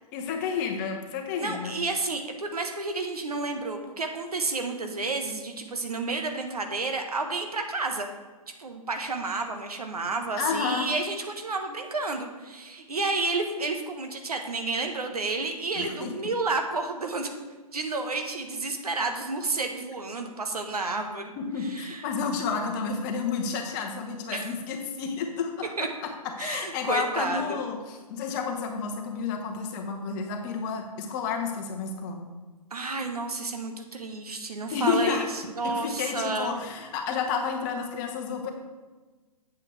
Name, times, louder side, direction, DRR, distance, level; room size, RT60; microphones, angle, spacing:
voice 1, 0.1-1.7 10.4-10.9 15.7-16.1 21.4-26.1 26.4-32.3 34.7-35.3 35.6-38.5, left 5 dB, 30° left, 3 dB, 1.2 m, -30 dB
voice 2, 1.4-8.1 8.6-17.3 17.7-21.3 21.7-22.0 24.3-24.5 25.8-25.9 26.4-27.6 32.7-36.5, right 3 dB, 75° right, 5 dB, 1.2 m, -31 dB
8.4 x 8.1 x 3.3 m, 1.3 s
figure-of-eight pair, 125°, 20 cm